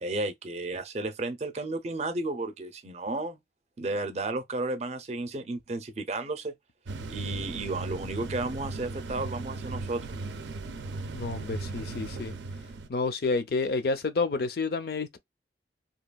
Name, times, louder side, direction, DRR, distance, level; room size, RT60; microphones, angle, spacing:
voice 1, 0.0-3.4 3.8-6.5 7.1-10.1, right 2 dB, 40° right, 0.5 m, -33 dB
sound 1, 6.9-12.9, right 3 dB, 85° right, 0.4 m, -37 dB
voice 2, 11.1-12.3 12.9-15.2, left 3 dB, 60° left, 0.5 m, -29 dB
2.9 x 2.3 x 2.2 m
head